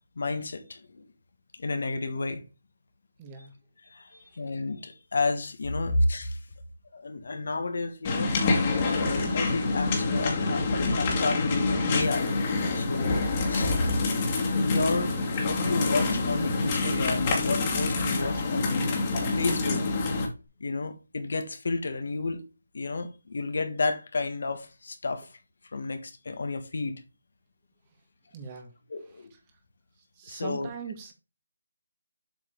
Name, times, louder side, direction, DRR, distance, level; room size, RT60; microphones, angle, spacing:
voice 1, 0.1-1.0 1.5-2.4 3.9-6.4 6.9-13.7 14.5-19.0 19.2-20.0 20.6-22.4 22.7-25.4 25.7-27.0 28.9-29.3 30.3-30.7, left 3 dB, 60° left, 1.5 m, -31 dB
voice 2, 3.2-3.5 28.3-28.7 30.2-31.1, right 6 dB, 20° right, 1.5 m, -40 dB
sound 1, 8.0-20.3, left 3 dB, 25° left, 2.0 m, -26 dB
7.7 x 5.0 x 3.7 m
figure-of-eight pair, 160°, 0 cm